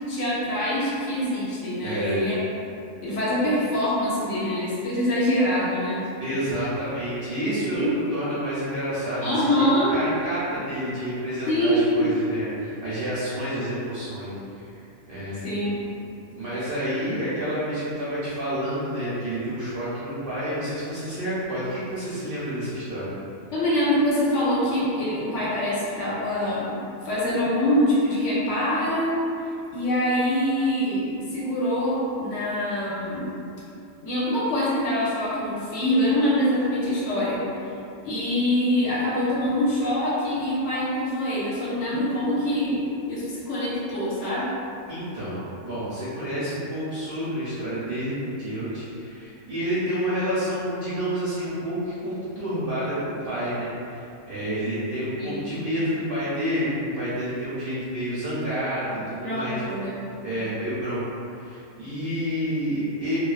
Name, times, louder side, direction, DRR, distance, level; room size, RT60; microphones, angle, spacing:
voice 1, 0.1-2.4 3.0-6.0 7.7-7.9 9.2-10.0 11.5-12.1 15.4-15.8 23.5-26.7 27.0-29.2 29.7-31.1 31.3-33.3 34.0-37.4 38.0-44.5 55.2-55.5 59.2-60.0, equal, 70° left, -7 dB, 0.9 m, -24 dB
voice 2, 1.8-2.2 6.2-14.7 15.1-15.5 16.3-23.1 44.9-59.6 60.2-61.0 61.3-63.2, equal, 60° right, -11 dB, 0.6 m, -29 dB
2.3 x 2.3 x 2.3 m, 2.6 s
omnidirectional pair, 1.4 m